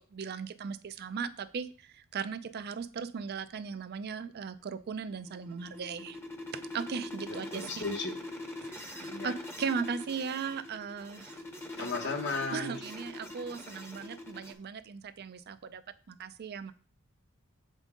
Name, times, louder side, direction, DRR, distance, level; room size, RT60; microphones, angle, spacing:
voice 1, 0.0-6.2 6.5-7.8 8.6-11.4 11.8-11.9 12.5-16.7, right 6 dB, 50° right, 12 dB, 0.4 m, -38 dB
sound 1, 5.1-14.5, left 2 dB, 10° left, 0.8 m, -43 dB
voice 2, 7.5-8.2 9.0-9.3 11.8-12.7, left 3 dB, 55° left, 5 dB, 1.0 m, -35 dB
7.3 x 5.2 x 3.6 m, 0.42 s
head